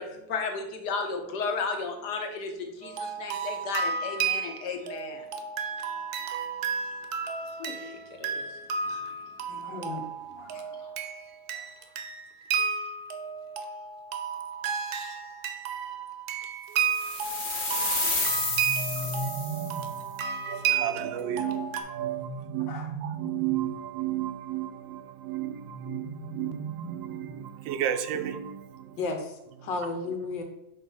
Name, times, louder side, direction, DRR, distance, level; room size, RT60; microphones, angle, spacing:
voice 1, 0.0-5.2 7.6-8.5 8.8-9.1 9.5-9.7 10.5-10.6, left 4 dB, 65° left, 4 dB, 1.3 m, -34 dB
sound 1, 2.8-21.8, right 6 dB, 65° right, 1.0 m, -33 dB
voice 2, 9.5-10.0 10.4-11.0 11.5-11.7 11.9-12.0 22.7-22.9 29.0-30.4, left 3 dB, 85° left, 4 dB, 1.6 m, -35 dB
sound 2, 16.9-19.9, left 2 dB, 35° left, 1.0 m, -30 dB
sound 3, 18.2-20.1 21.9-23.8 25.6-27.6, right 3 dB, 35° right, 0.6 m, -37 dB
voice 3, 18.9-22.7 23.0-29.0, right 11 dB, 90° right, 9 dB, 1.3 m, -34 dB
5.0 x 3.6 x 5.5 m, 0.86 s
omnidirectional pair, 2.0 m